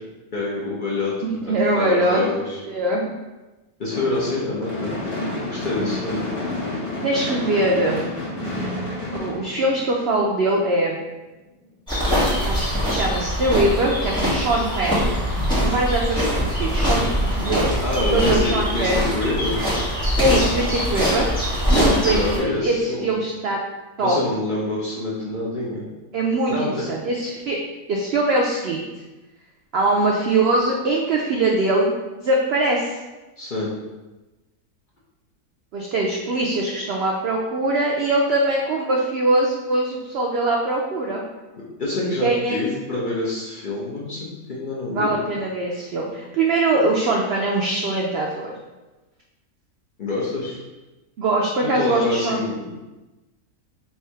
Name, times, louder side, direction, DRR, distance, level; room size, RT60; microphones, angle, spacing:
voice 1, 0.3-1.2 1.5-2.6 3.8-4.9 5.5-6.2 17.8-19.6 21.7-23.1 24.0-25.8 26.5-26.8 33.4-33.7 41.8-45.2 50.0-50.6 51.6-52.7, left 2 dB, 45° left, -6 dB, 0.7 m, -26 dB
voice 2, 1.2-2.2 2.7-3.1 5.8-6.0 7.0-8.1 9.1-11.0 12.4-15.1 15.6-17.7 18.0-19.0 20.2-21.3 21.7-23.6 24.0-24.2 26.1-27.6 27.9-28.9 29.7-33.0 35.7-41.2 42.2-42.6 44.9-48.5 51.2-52.4, right 2 dB, 70° right, -1 dB, 0.6 m, -22 dB
Gunshot gunfire / Fireworks, 3.9-10.2, left 1 dB, 25° left, 1.3 m, -29 dB
sound 1, 11.9-22.4, equal, 5° left, 1.2 m, -22 dB
3.4 x 2.7 x 4.4 m, 1.1 s
omnidirectional pair, 1.6 m